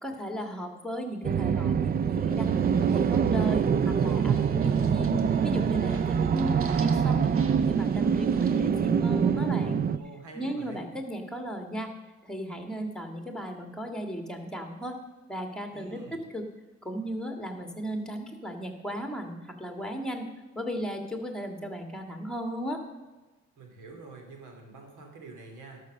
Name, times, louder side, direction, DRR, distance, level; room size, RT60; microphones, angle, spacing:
voice 1, 0.0-2.5 2.9-5.1 5.4-7.3 7.6-9.8 10.3-11.9 12.2-15.0 15.3-16.0 16.3-16.4 16.8-20.3 20.5-22.8, equal, ahead, 4 dB, 1.8 m, -35 dB
sound 1, 1.2-10.0, right 7 dB, 30° right, 0.4 m, -25 dB
sound 2, 2.3-8.6, right 4 dB, 45° right, 1.2 m, -49 dB
voice 2, 9.9-10.8 15.7-16.2 23.6-25.8, right 3 dB, 80° right, 2 dB, 2.7 m, -46 dB
12.0 x 6.5 x 6.4 m, 1.2 s
cardioid pair, 90°, 30 cm